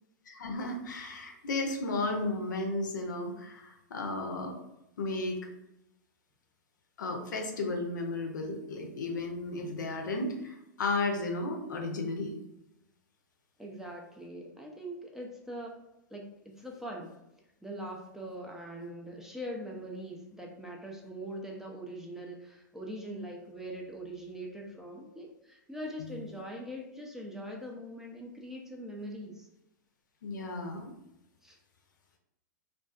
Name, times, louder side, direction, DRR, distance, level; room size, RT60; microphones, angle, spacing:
voice 1, 0.3-4.6 5.0-5.4 7.0-12.4 26.0-26.3 30.2-30.9, left 2 dB, 75° left, 3 dB, 0.5 m, -34 dB
voice 2, 13.6-15.7 16.1-16.3 16.6-17.1 17.6-29.5 31.4-31.6, equal, 5° right, 0 dB, 0.4 m, -42 dB
2.5 x 2.3 x 2.3 m, 0.88 s
hypercardioid pair, 110°, 10 cm